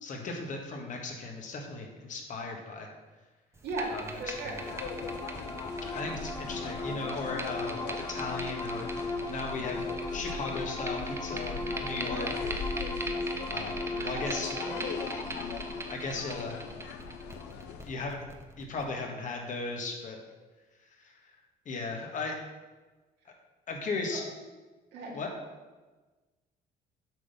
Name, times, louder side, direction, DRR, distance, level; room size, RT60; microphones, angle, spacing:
voice 1, 0.0-2.9 3.9-4.6 5.9-9.8 10.1-12.7 13.5-14.6 15.9-16.6 17.8-18.3 18.6-20.2 21.0-21.1 21.6-22.4 23.7-24.2 25.1-25.3, left 3 dB, 50° left, 1 dB, 1.6 m, -37 dB
sound 1, 3.5-18.8, right 2 dB, 15° right, 0.9 m, -42 dB
sound 2, 4.1-17.6, left 2 dB, 25° left, 0.9 m, -38 dB
voice 2, 4.2-4.6 14.0-14.2 14.5-14.8 24.1-24.2 24.9-25.2, right 2 dB, 75° right, -3 dB, 2.5 m, -37 dB
sound 3, 4.6-17.9, left 7 dB, 85° left, 0.7 m, -41 dB
7.7 x 3.9 x 6.8 m, 1.2 s
cardioid pair, 110°, 17 cm